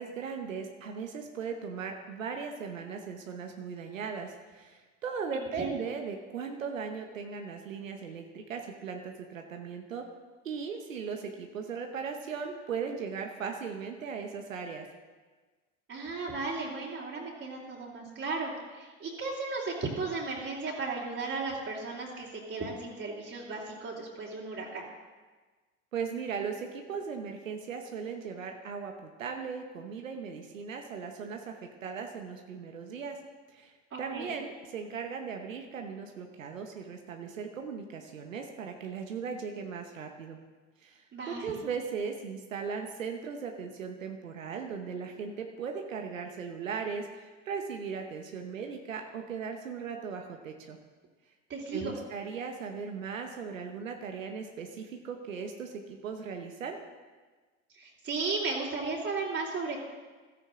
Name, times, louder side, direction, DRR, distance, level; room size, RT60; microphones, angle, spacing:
voice 1, 0.0-10.1 10.4-14.9 25.9-33.2 33.5-40.4 40.8-50.8 51.7-56.8, right 6 dB, 90° right, 4 dB, 1.2 m, -38 dB
voice 2, 5.3-5.7 15.9-24.9 33.9-34.3 41.1-41.6 51.5-51.9 57.7-59.8, right 3 dB, 35° right, -5 dB, 3.1 m, -35 dB
15.5 x 13.5 x 3.8 m, 1.4 s
hypercardioid pair, 75°, 38 cm